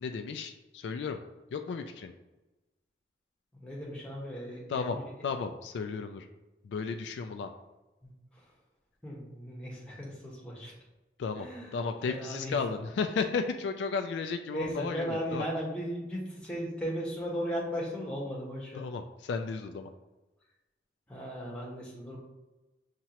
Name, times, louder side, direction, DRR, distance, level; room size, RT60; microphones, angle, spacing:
voice 1, 0.0-1.2 1.5-2.1 4.7-5.0 5.2-6.3 6.6-7.5 11.2-11.5 11.7-15.5 18.7-19.9, left 5 dB, 85° left, 6 dB, 0.3 m, -34 dB
voice 2, 3.5-5.1 8.0-8.1 9.0-10.7 11.4-11.8 12.1-12.6 14.5-18.8 21.1-22.2, equal, 5° left, -5 dB, 1.1 m, -36 dB
5.6 x 2.9 x 2.9 m, 1.1 s
head